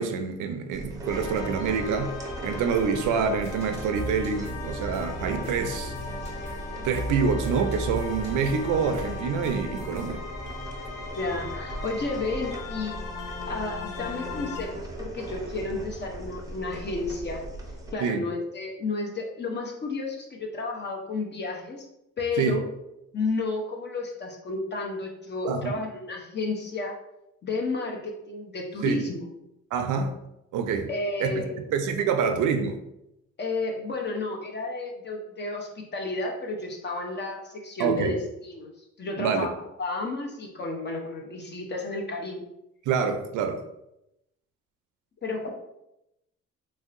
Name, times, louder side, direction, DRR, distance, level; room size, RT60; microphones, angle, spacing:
voice 1, 0.0-2.2 2.4-5.9 6.8-10.2 18.0-18.3 22.4-22.6 25.5-25.7 28.8-29.0 29.7-30.1 30.5-30.9 31.2-31.3 31.7-32.8 37.8-38.1 39.2-39.5 42.9-43.6, right 6 dB, 80° right, 0.5 m, -26 dB
sound 1, 0.7-17.9, right 1 dB, 10° right, 0.6 m, -38 dB
sound 2, 1.1-14.7, left 4 dB, 90° left, 0.6 m, -39 dB
sound 3, 3.1-10.1, right 1 dB, 20° left, 1.0 m, -37 dB
voice 2, 11.1-13.0 13.5-17.4 17.9-21.9 22.2-22.6 23.1-27.0 27.4-29.2 30.9-31.7 33.4-38.7 39.0-42.5 45.2-45.5, left 3 dB, 35° left, 0.7 m, -32 dB
3.1 x 2.7 x 2.5 m
cardioid pair, 90°, 30 cm